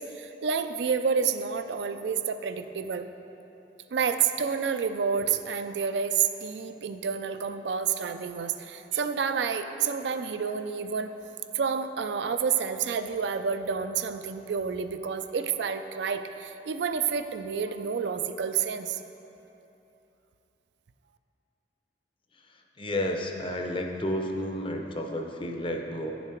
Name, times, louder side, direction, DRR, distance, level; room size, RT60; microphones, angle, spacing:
voice 1, 0.0-3.1 3.9-11.2 11.5-19.0, right 6 dB, 70° right, 9 dB, 0.4 m, -29 dB
voice 2, 22.8-26.1, left 1 dB, 30° left, 2 dB, 0.6 m, -31 dB
9.0 x 7.2 x 4.4 m, 3.0 s
head